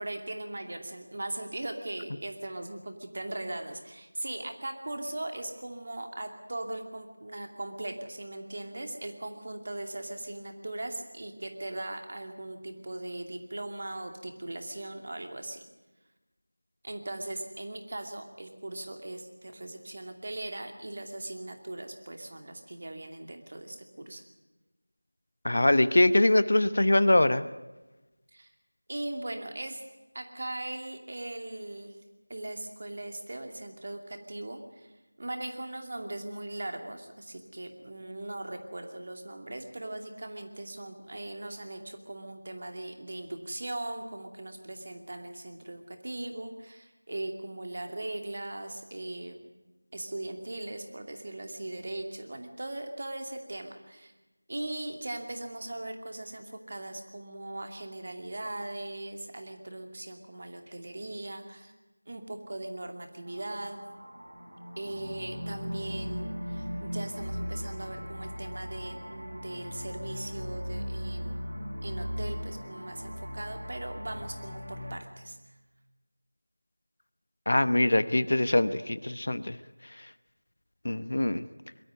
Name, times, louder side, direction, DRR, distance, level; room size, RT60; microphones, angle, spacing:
voice 1, 0.0-15.6 16.8-24.2 28.3-28.5 28.9-29.8 30.1-32.0 32.3-34.9 35.2-49.3 49.9-54.1 54.5-61.7 62.1-63.9 64.8-71.6 71.8-75.4, right 1 dB, 40° right, 5 dB, 2.5 m, -39 dB
voice 2, 25.4-27.4 77.5-79.6 80.8-81.4, left 1 dB, 50° left, 15 dB, 0.9 m, -23 dB
sound 1, 63.3-74.9, equal, 85° right, 7.7 m, -38 dB
23.0 x 13.0 x 9.6 m, 1.1 s
figure-of-eight pair, 175°, 0 cm